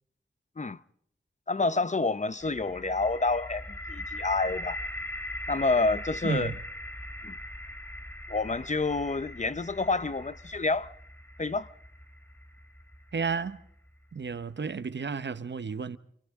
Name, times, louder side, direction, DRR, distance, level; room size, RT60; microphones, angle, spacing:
voice 1, 1.5-4.8 5.5-6.5 7.2-7.3 8.3-10.9 11.4-11.7, left 3 dB, 40° left, 0.8 m, -28 dB
sound 1, 2.4-14.2, left 1 dB, 15° left, 1.8 m, -41 dB
voice 2, 6.2-6.6 13.1-13.6 14.1-16.0, right 5 dB, 80° right, 1.0 m, -32 dB
29.5 x 28.0 x 3.7 m
wide cardioid pair, 70°, 18 cm